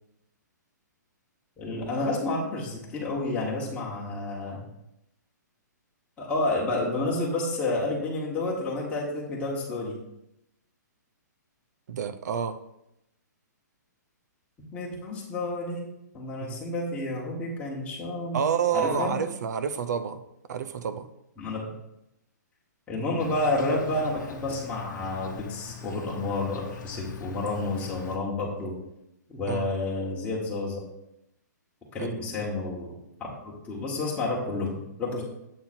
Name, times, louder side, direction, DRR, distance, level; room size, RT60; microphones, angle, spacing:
voice 1, 1.6-4.6 6.2-10.0 14.7-15.9 16.1-18.4 18.7-19.1 21.4-21.6 22.9-28.8 29.3-30.8 31.9-32.9 33.2-35.2, left 2 dB, 15° left, -4 dB, 1.4 m, -30 dB
voice 2, 11.9-12.6 16.4-16.6 18.3-20.2 20.5-21.1 29.5-29.7 32.0-32.2, right 8 dB, 65° right, 12 dB, 0.6 m, -29 dB
Insect, 23.2-28.2, left 6 dB, 75° left, 0.9 m, -43 dB
7.5 x 3.9 x 4.3 m, 0.84 s
hypercardioid pair, 150°, 10 cm